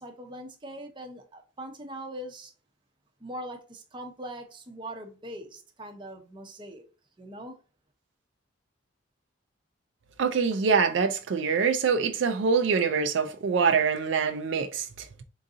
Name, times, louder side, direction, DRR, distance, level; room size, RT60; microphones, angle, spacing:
voice 1, 0.0-2.5 3.2-6.8 7.2-7.6, right 1 dB, 25° right, 0.7 m, -41 dB
voice 2, 10.2-15.1, right 5 dB, 70° right, 0.4 m, -25 dB
3.9 x 2.7 x 3.6 m
head